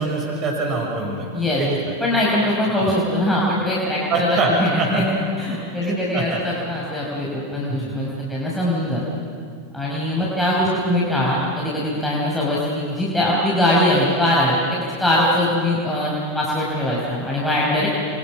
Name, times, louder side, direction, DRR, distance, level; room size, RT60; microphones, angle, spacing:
voice 1, 0.0-1.3 1.6-1.9 4.1-5.0 5.8-6.4 7.7-7.9, right 2 dB, 35° right, -1 dB, 6.1 m, -24 dB
voice 2, 2.0-9.0 9.7-17.9, left 1 dB, 10° left, -5 dB, 5.2 m, -21 dB
29.5 x 24.0 x 6.3 m, 2.2 s
figure-of-eight pair, 90°, 0 cm